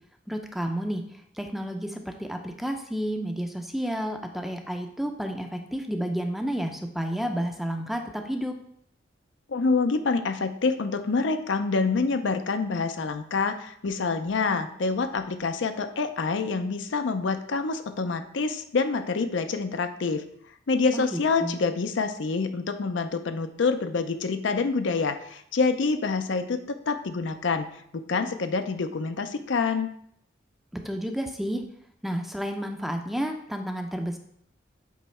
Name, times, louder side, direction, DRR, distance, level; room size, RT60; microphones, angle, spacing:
voice 1, 0.3-1.0 1.4-8.5 20.9-21.5 30.7-31.6 32.0-34.2, equal, ahead, 4 dB, 0.5 m, -31 dB
voice 2, 9.5-20.2 20.7-27.7 27.9-29.9, left 4 dB, 80° left, 8 dB, 0.5 m, -27 dB
8.2 x 3.1 x 4.3 m, 0.68 s
head